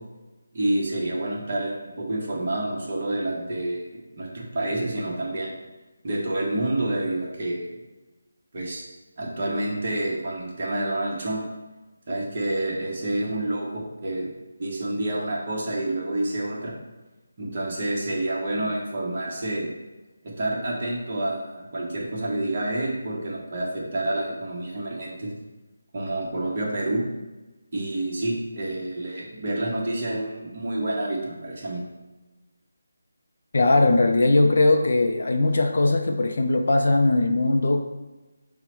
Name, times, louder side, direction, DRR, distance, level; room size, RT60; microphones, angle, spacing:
voice 1, 0.5-3.8 4.2-5.5 6.0-7.7 8.5-8.8 9.2-11.5 12.1-14.3 14.6-16.7 17.4-19.7 20.2-25.3 25.9-27.0 27.7-31.8, right 1 dB, 30° right, -3 dB, 0.9 m, -28 dB
voice 2, 33.5-37.8, left 2 dB, 50° left, 4 dB, 0.4 m, -20 dB
5.3 x 2.1 x 4.4 m, 1.1 s
figure-of-eight pair, 175°, 0 cm